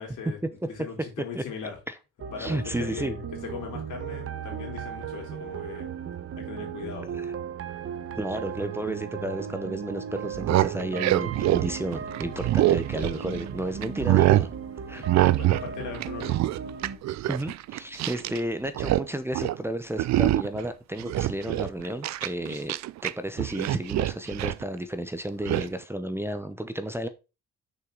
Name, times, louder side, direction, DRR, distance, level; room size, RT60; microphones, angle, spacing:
voice 1, 0.0-1.8 2.3-3.2 3.5-5.9 6.4-7.1 15.3-16.4, left 6 dB, 80° left, 3.3 m, -39 dB
sound 1, 2.2-17.0, right 7 dB, 45° right, 1.0 m, -36 dB
voice 2, 2.4-3.2 7.2-7.3 8.2-14.5 14.9-15.1 17.3-22.7 23.0-27.1, right 1 dB, 10° right, 0.7 m, -32 dB
sound 2, 10.2-13.5 13.8-14.5 15.1-15.7 15.9-18.4 18.6-19.1 19.3-19.6 20.0-20.6 21.0-23.1 23.4-24.6 25.5-25.7, right 15 dB, 65° right, 0.4 m, -24 dB
6.4 x 5.7 x 3.8 m
cardioid pair, 90°, 30 cm